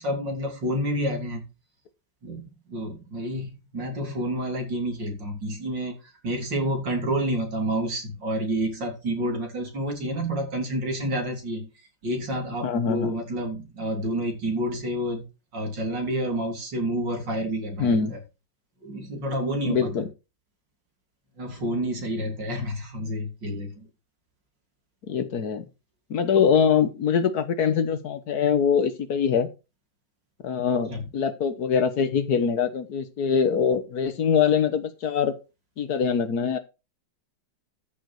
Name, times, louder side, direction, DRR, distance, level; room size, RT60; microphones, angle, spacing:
voice 1, 0.0-1.4 2.2-6.0 6.2-11.7 12.0-15.2 15.5-18.2 18.8-19.9 21.4-23.7 30.9-31.0, equal, 80° right, 3 dB, 3.9 m, -29 dB
voice 2, 12.6-13.1 17.8-18.1 19.6-20.1 25.1-25.6 26.1-29.5 30.4-35.3 35.8-36.6, left 6 dB, 60° left, 12 dB, 1.6 m, -23 dB
13.5 x 6.7 x 4.8 m, 0.28 s
omnidirectional pair, 1.9 m